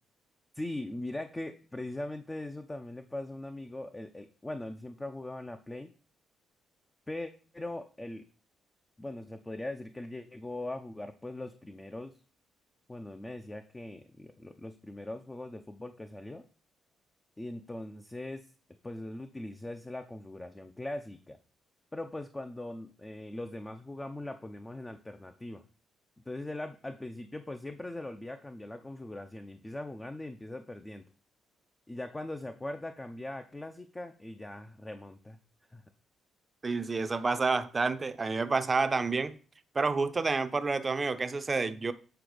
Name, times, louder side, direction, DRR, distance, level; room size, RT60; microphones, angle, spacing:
voice 1, 0.5-5.9 7.1-8.2 9.0-12.2 12.9-16.4 17.4-18.5 18.8-21.4 21.9-25.6 26.3-31.0 31.9-35.4 35.7-35.8, left 1 dB, 15° left, 0.6 m, -40 dB
voice 2, 36.6-39.3 39.7-41.9, right 4 dB, 30° right, 0.6 m, -29 dB
7.9 x 3.9 x 5.0 m
cardioid pair, 90°, 0 cm